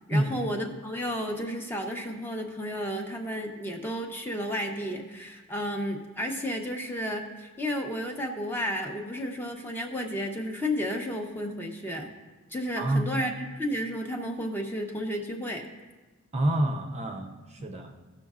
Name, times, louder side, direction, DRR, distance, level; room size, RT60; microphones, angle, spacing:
voice 1, 0.1-12.1 12.5-15.6, equal, 10° left, 2 dB, 0.7 m, -32 dB
voice 2, 12.8-13.1 16.3-18.0, right 1 dB, 30° right, 3 dB, 0.6 m, -27 dB
16.0 x 6.3 x 2.4 m, 1.2 s
head